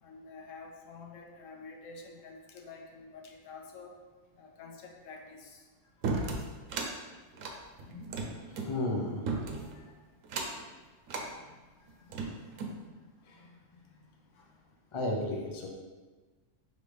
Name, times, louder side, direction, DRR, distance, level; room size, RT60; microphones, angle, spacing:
voice 1, 0.0-3.9 4.4-5.7, left 4 dB, 80° left, 1 dB, 1.0 m, -48 dB
sound 1, 6.0-6.9 7.3-8.7 9.3-9.8 10.2-10.7 11.1-11.3 11.9-12.8, right 3 dB, 85° right, 1.0 m, -35 dB
voice 2, 8.5-9.3 9.7-9.8 12.1-12.3 13.3-13.6 14.9-15.7, left 1 dB, 35° left, -1 dB, 0.4 m, -34 dB
5.1 x 3.1 x 3.3 m, 1.3 s
omnidirectional pair, 1.3 m